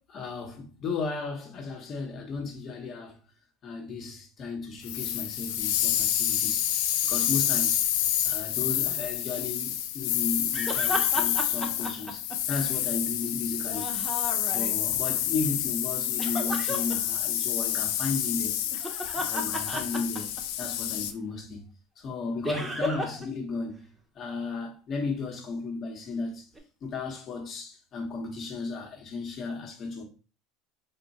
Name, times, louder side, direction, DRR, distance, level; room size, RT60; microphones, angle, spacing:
voice 1, 0.0-3.2 3.6-6.7 7.0-7.8 8.2-18.5 19.1-21.6 22.0-23.9 24.1-26.5 26.8-30.0, left 4 dB, 40° left, 0.9 m, -35 dB
sound 1, 4.8-21.1, left 11 dB, 80° left, 0.5 m, -28 dB
sound 2, 10.5-12.9 13.6-15.0 16.2-16.9 18.6-20.6 22.4-23.3 23.5-23.6 26.5-26.6, equal, 15° right, 0.8 m, -34 dB
3.6 x 2.2 x 4.1 m
supercardioid pair, 110°, 0 cm